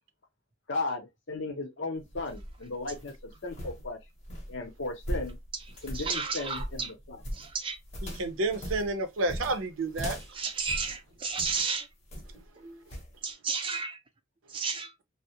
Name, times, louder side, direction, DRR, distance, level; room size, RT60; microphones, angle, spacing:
voice 1, 0.7-4.0 4.5-5.4 5.8-7.2, left 3 dB, 65° left, 0.8 m, -36 dB
sound 1, 1.9-11.7 12.1-12.5 12.9-13.1, equal, 35° left, 0.8 m, -40 dB
voice 2, 5.9-6.9 7.3-7.8 10.1-11.9 12.6-12.9 13.2-14.0 14.5-14.9, right 5 dB, 25° right, 0.4 m, -33 dB
voice 3, 8.2-10.2, right 2 dB, 80° right, 0.6 m, -30 dB
2.2 x 2.0 x 2.7 m
head